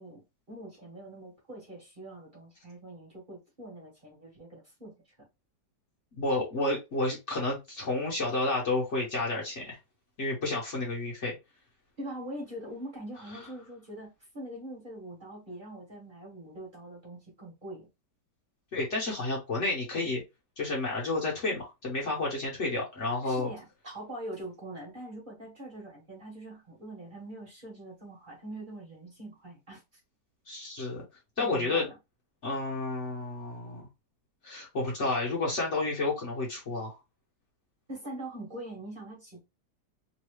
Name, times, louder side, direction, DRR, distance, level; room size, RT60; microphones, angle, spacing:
voice 1, 0.0-4.9 12.0-17.9 23.2-30.0 31.4-32.0 37.9-39.4, right 1 dB, 35° right, 1.3 m, -43 dB
voice 2, 6.1-9.8 10.2-11.3 18.7-20.2 20.6-23.5 30.5-31.0 31.4-31.9 32.4-33.9 34.4-37.0, left 2 dB, 50° left, 1.3 m, -31 dB
3.1 x 2.6 x 3.2 m
omnidirectional pair, 1.7 m